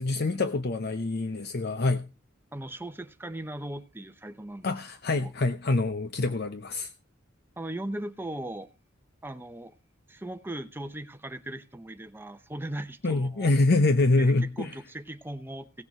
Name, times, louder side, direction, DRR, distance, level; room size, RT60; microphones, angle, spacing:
voice 1, 0.0-2.0 4.6-6.9 13.0-14.7, left 2 dB, 55° left, 9 dB, 0.7 m, -25 dB
voice 2, 2.5-4.7 5.1-5.3 7.6-8.7 9.2-9.8 10.1-13.5 14.2-15.8, right 1 dB, 10° right, 10 dB, 0.8 m, -38 dB
17.0 x 6.7 x 4.8 m, 0.30 s
head